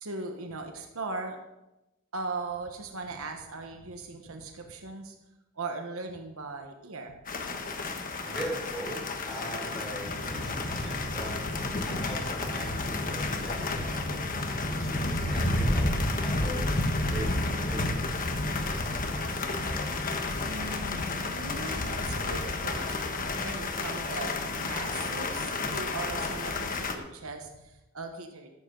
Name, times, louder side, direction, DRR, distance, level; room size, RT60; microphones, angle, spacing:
voice 1, 0.0-1.4 2.1-5.1 5.6-7.2 20.4-28.5, right 3 dB, 70° right, 4 dB, 1.3 m, -39 dB
sound 1, 7.3-26.9, left 2 dB, 40° left, 1.3 m, -31 dB
voice 2, 8.2-11.4 11.8-15.9 16.2-16.7 17.1-17.4 17.6-18.1, right 1 dB, ahead, -4 dB, 5.3 m, -40 dB
14.0 x 12.0 x 4.0 m, 0.95 s
head